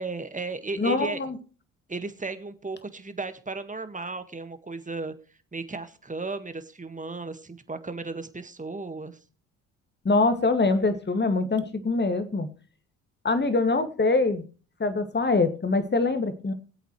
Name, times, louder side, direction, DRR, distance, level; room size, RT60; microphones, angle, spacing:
voice 1, 0.0-1.2 1.9-5.1 5.5-9.2, right 3 dB, 20° right, 10 dB, 1.7 m, -35 dB
voice 2, 0.8-1.4 10.0-12.5 13.2-14.4 14.8-16.5, left 3 dB, 25° left, 10 dB, 2.2 m, -24 dB
22.5 x 8.1 x 3.2 m, 0.37 s
hypercardioid pair, 55°, 38 cm